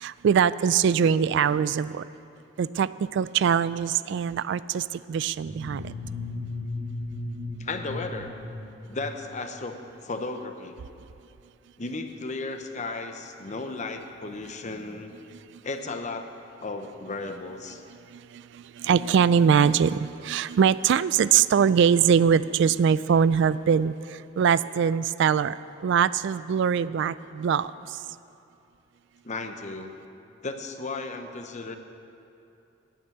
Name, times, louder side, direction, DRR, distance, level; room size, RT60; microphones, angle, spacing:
voice 1, 0.0-2.0 2.6-4.8 5.1-5.8 18.8-23.9 24.4-25.5 25.8-27.7, right 7 dB, 65° right, 17 dB, 0.3 m, -22 dB
sound 1, 5.4-9.5, left 2 dB, 35° right, 1.0 m, -36 dB
voice 2, 7.6-8.3 8.9-10.7 11.8-15.2 15.6-16.3 16.6-17.8 29.2-29.9 30.4-31.8, left 3 dB, 40° left, 6 dB, 0.8 m, -35 dB
9.5 x 9.0 x 9.0 m, 2.7 s
head